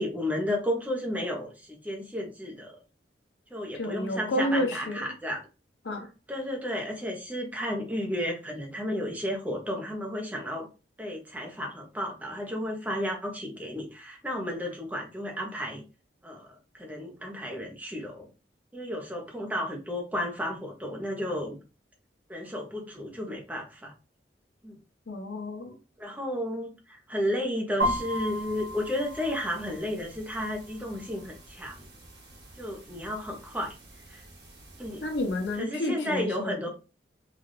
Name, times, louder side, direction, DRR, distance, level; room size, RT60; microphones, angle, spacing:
voice 1, 0.0-2.8 3.5-5.4 6.3-10.7 11.0-15.8 16.2-16.5 16.7-18.3 18.7-21.6 22.3-23.9 24.6-24.7 26.0-31.9 32.6-33.7 34.1-34.2 34.8-35.0 35.6-36.7, equal, 10° right, 0.8 m, -33 dB
voice 2, 3.7-5.0 5.8-6.1 25.1-25.7 35.0-36.7, left 1 dB, 80° left, 1.0 m, -30 dB
sound 1, 27.8-35.6, equal, 85° right, 2.0 m, -38 dB
4.0 x 2.5 x 3.2 m
head